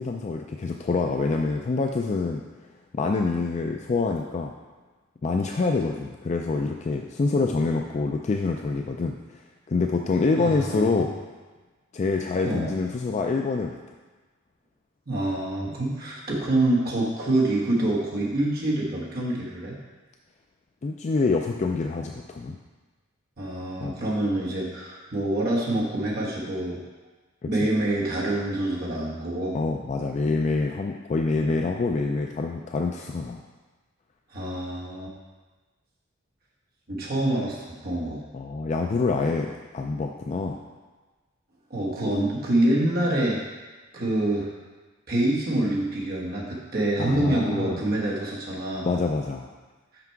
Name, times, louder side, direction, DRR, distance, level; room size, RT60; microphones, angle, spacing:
voice 1, 0.0-2.4 2.9-4.5 5.2-9.2 9.7-11.1 11.9-13.8 15.7-15.8 20.8-22.6 23.8-24.0 27.4-27.5 29.5-33.4 38.3-40.6 47.0-47.8 48.8-49.5, left 3 dB, 35° left, 3 dB, 0.3 m, -26 dB
voice 2, 10.4-11.1 12.4-12.7 15.1-19.8 23.4-26.8 27.5-29.6 34.3-35.1 36.9-38.2 41.7-43.4 43.9-44.5 45.1-48.9, right 1 dB, 45° right, -4 dB, 1.2 m, -26 dB
5.9 x 5.9 x 4.6 m, 1.3 s
head